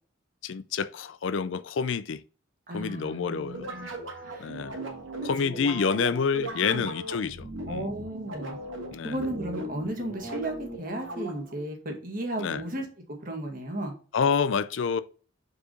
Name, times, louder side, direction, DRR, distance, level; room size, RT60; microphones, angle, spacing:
voice 1, 0.4-2.2 2.7-3.7 4.4-4.8 5.2-7.9 8.9-9.1 12.4-12.6 14.1-15.0, left 6 dB, 75° left, 0.4 m, -28 dB
voice 2, 2.7-3.9 4.2-4.5 5.2-5.3 6.7-6.9 7.7-8.6 9.0-12.9 13.2-13.9, right 1 dB, 45° right, 1.8 m, -34 dB
sound 1, 3.5-11.6, right 1 dB, 85° right, 1.9 m, -38 dB
4.8 x 4.5 x 5.2 m
head